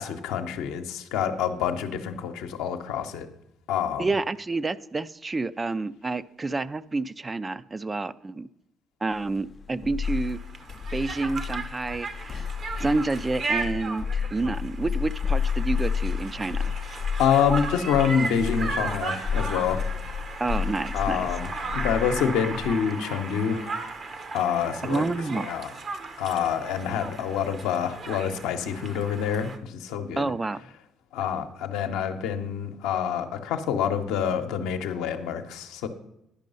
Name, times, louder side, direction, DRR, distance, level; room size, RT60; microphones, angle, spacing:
voice 1, 0.0-3.3 3.7-4.1 16.9-19.9 20.9-21.5 21.7-23.8 24.3-25.0 25.3-25.7 26.2-30.3 31.1-35.9, left 8 dB, 80° left, 6 dB, 0.8 m, -27 dB
voice 2, 4.0-8.5 9.0-10.4 10.9-12.4 12.8-16.7 20.4-21.3 24.9-25.5 30.2-30.6, right 3 dB, 25° right, 15 dB, 0.4 m, -29 dB
sound 1, 9.3-22.7, left 6 dB, 45° left, 0.4 m, -31 dB
Conversation, 10.0-29.6, right 3 dB, 50° right, 1.0 m, -36 dB
10.5 x 5.3 x 5.4 m, 0.83 s
supercardioid pair, 65°, 0 cm